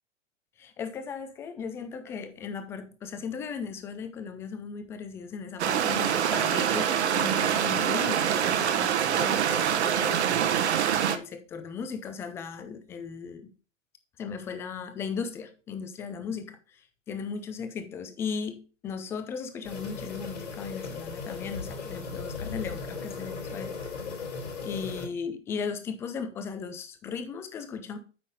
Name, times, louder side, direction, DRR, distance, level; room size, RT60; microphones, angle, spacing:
voice 1, 0.6-10.2 11.1-13.5 14.2-23.8 24.6-28.0, left 6 dB, 5° left, 0.4 m, -37 dB
sound 1, 5.6-11.2, right 9 dB, 60° right, 1.2 m, -25 dB
sound 2, 19.6-25.1, left 4 dB, 70° left, 4.3 m, -37 dB
8.5 x 5.4 x 5.3 m
hypercardioid pair, 130°, 38 cm